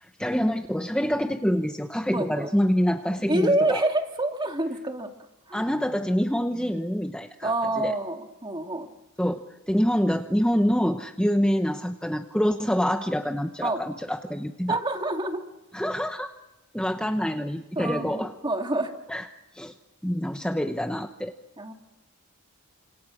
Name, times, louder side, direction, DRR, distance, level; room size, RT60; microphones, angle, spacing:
voice 1, 0.0-3.8 5.5-7.9 9.2-14.8 15.7-16.3 16.7-18.3 19.1-19.3 19.5-19.7 20.0-21.3, equal, 5° left, 5 dB, 0.9 m, -26 dB
voice 2, 2.1-2.5 3.3-5.1 5.5-5.7 7.4-8.9 13.6-13.8 14.7-15.4 17.8-18.9 21.6-21.7, right 2 dB, 20° right, 4 dB, 2.6 m, -27 dB
30.0 x 27.0 x 7.3 m, 1.0 s
head